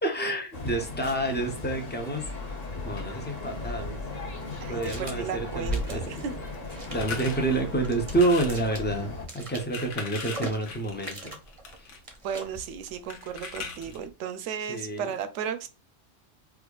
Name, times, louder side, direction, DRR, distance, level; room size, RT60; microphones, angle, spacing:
voice 1, 0.0-2.2 2.8-4.0 4.7-6.2 6.9-9.1 9.3-11.3 13.9-14.0 14.7-15.1, right 2 dB, 15° left, 0.4 m, -28 dB
sound 1, 0.5-9.3, left 2 dB, 40° left, 0.7 m, -36 dB
sound 2, 3.2-14.1, right 2 dB, 35° right, 0.6 m, -45 dB
voice 2, 4.6-6.3 12.2-15.7, right 7 dB, 75° right, 0.9 m, -35 dB
sound 3, 6.9-7.4 8.1-8.6 9.5-12.0 13.1-14.0, left 5 dB, 80° left, 1.1 m, -39 dB
4.6 x 2.4 x 2.3 m
omnidirectional pair, 1.2 m